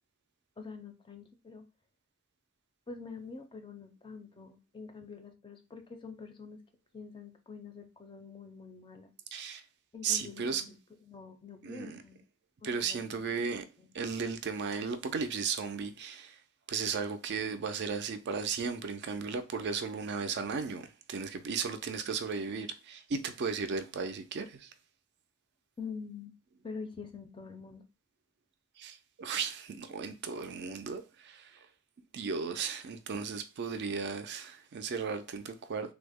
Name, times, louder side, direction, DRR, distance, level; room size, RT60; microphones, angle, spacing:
voice 1, 0.6-1.6 2.9-6.6 6.9-9.1 9.9-12.2 12.6-13.3 13.8-13.9 25.8-26.3 26.6-27.8, left 5 dB, 20° left, 0.4 m, -46 dB
voice 2, 9.3-9.6 10.0-10.6 11.6-12.0 12.6-13.6 13.9-16.4 16.7-24.7 28.8-31.7 32.1-35.9, right 5 dB, 50° right, 0.4 m, -35 dB
3.5 x 2.0 x 3.5 m
head